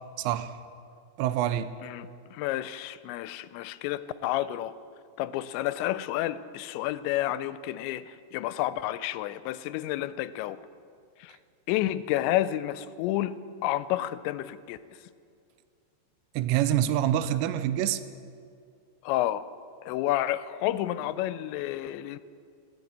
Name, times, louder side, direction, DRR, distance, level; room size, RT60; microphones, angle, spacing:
voice 1, 0.2-0.5 1.2-1.7 16.4-18.0, right 11 dB, 90° right, 12 dB, 2.8 m, -26 dB
voice 2, 1.8-4.7 5.2-10.6 11.2-11.4 11.7-14.8 19.0-19.5 19.8-22.2, left 14 dB, 90° left, 15 dB, 2.8 m, -30 dB
16.0 x 7.7 x 8.5 m, 2.3 s
omnidirectional pair, 5.0 m